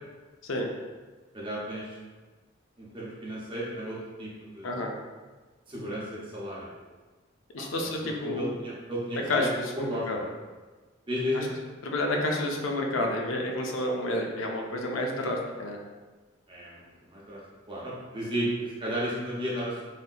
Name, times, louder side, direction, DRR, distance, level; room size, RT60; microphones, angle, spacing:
voice 1, 1.3-1.9 2.8-4.7 5.7-6.7 8.0-9.5 9.8-10.3 11.1-11.5 16.5-16.8 17.1-17.4 17.7-19.8, equal, 25° right, -6 dB, 0.7 m, -33 dB
voice 2, 7.5-8.5 9.1-10.2 11.3-11.5 11.8-15.8, left 1 dB, 85° left, 1 dB, 0.5 m, -30 dB
3.4 x 2.7 x 2.4 m, 1.3 s
head